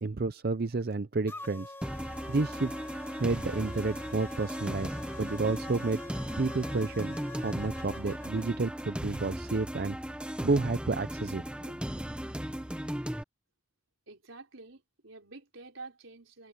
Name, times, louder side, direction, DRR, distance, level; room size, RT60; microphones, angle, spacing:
voice 1, 0.0-1.7 2.3-2.7 3.2-6.0 6.4-10.0 10.4-11.4, right 3 dB, 50° right, 0.6 m, -30 dB
sound 1, 1.3-8.5, left 2 dB, 10° left, 1.3 m, -45 dB
sound 2, 1.8-13.2, equal, 5° right, 0.9 m, -37 dB
voice 2, 14.1-16.5, right 3 dB, 80° right, 3.9 m, -48 dB
head